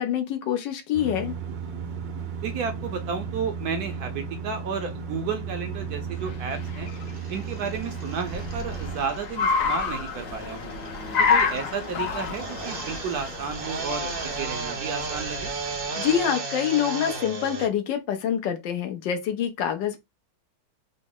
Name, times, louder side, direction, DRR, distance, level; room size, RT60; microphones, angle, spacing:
voice 1, 0.0-1.3 16.0-20.0, left 9 dB, 85° left, 1.4 m, -26 dB
sound 1, 0.9-9.0, right 6 dB, 85° right, 1.5 m, -34 dB
voice 2, 2.4-6.9 7.3-10.7 11.2-15.5, right 6 dB, 70° right, 1.0 m, -32 dB
Car, 5.8-16.1, left 5 dB, 65° left, 1.4 m, -30 dB
sound 2, 6.9-17.7, right 3 dB, 50° right, 0.6 m, -35 dB
4.0 x 2.0 x 3.6 m
omnidirectional pair, 1.9 m